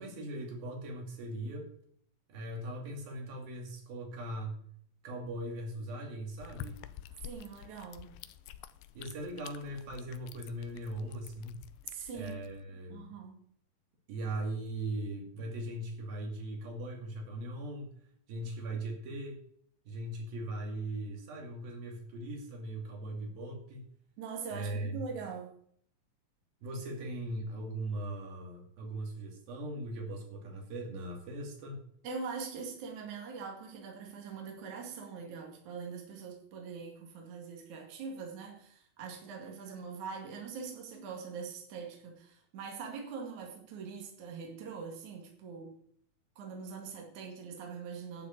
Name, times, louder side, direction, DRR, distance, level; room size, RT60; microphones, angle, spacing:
voice 1, 0.0-1.7 2.3-4.6 5.0-6.8 8.9-11.6 12.1-13.1 14.1-17.9 18.3-19.4 19.9-23.8 24.5-25.0 26.6-31.8, right 1 dB, 80° right, 1 dB, 4.3 m, -39 dB
sound 1, 6.4-12.6, left 11 dB, 80° left, 2.4 m, -49 dB
voice 2, 7.2-8.1 11.8-12.3 12.9-13.4 24.2-25.6 32.0-45.7 46.4-48.3, right 5 dB, 55° right, 1 dB, 3.4 m, -43 dB
11.5 x 6.7 x 8.1 m, 0.64 s
omnidirectional pair, 4.2 m